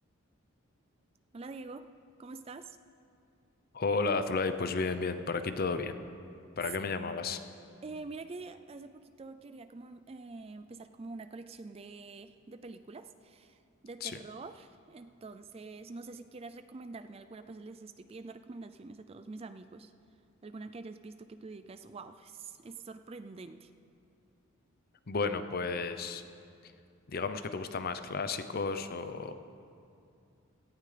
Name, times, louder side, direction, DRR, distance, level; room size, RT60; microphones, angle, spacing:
voice 1, 1.3-1.9 2.2-2.8 7.8-19.9 20.4-23.7, right 3 dB, 25° right, 10 dB, 0.3 m, -46 dB
voice 2, 3.7-6.0 6.6-7.4 14.0-14.2 25.1-26.2 27.1-29.3, left 4 dB, 45° left, 10 dB, 0.6 m, -32 dB
17.5 x 15.0 x 3.3 m, 2.5 s
head